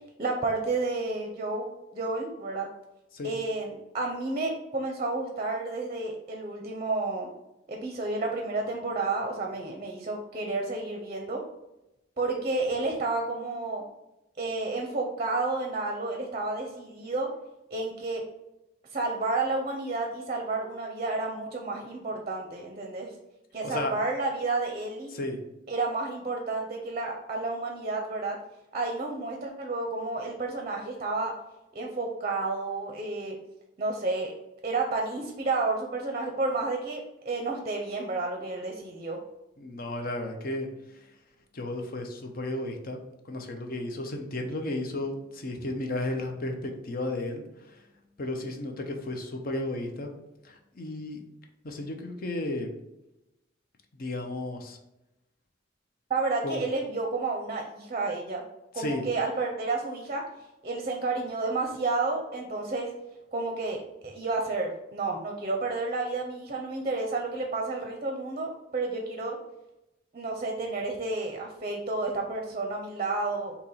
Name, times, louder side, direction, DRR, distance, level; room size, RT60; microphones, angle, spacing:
voice 1, 0.2-1.7 1.9-2.7 3.2-7.3 7.7-11.4 12.2-13.8 14.4-17.3 17.7-18.2 18.9-23.1 23.5-25.1 25.7-28.4 28.7-31.3 31.7-33.4 33.8-34.3 34.6-39.2 56.1-58.4 58.7-60.2 60.6-62.9 63.3-69.4 70.1-73.6, right 3 dB, 35° right, 1 dB, 0.6 m, -31 dB
voice 2, 23.6-23.9 25.1-25.4 39.6-41.1 41.5-43.0 43.3-47.8 48.2-50.1 50.4-51.2 51.6-52.7 53.9-54.8 56.4-56.6 58.8-59.0, left 2 dB, 50° left, 4 dB, 0.6 m, -33 dB
4.2 x 2.9 x 4.0 m, 0.92 s
head